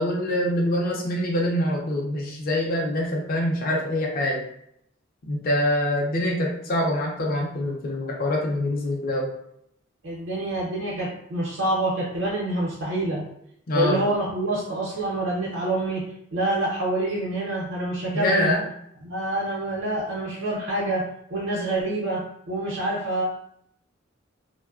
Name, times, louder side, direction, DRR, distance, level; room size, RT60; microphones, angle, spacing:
voice 1, 0.0-4.4 5.3-9.3 13.7-14.1 18.1-18.7, left 1 dB, 50° left, -1 dB, 0.4 m, -25 dB
voice 2, 10.0-13.3 13.7-18.5 19.0-23.2, right 1 dB, 70° right, -6 dB, 0.7 m, -27 dB
3.0 x 2.1 x 2.3 m, 0.72 s
head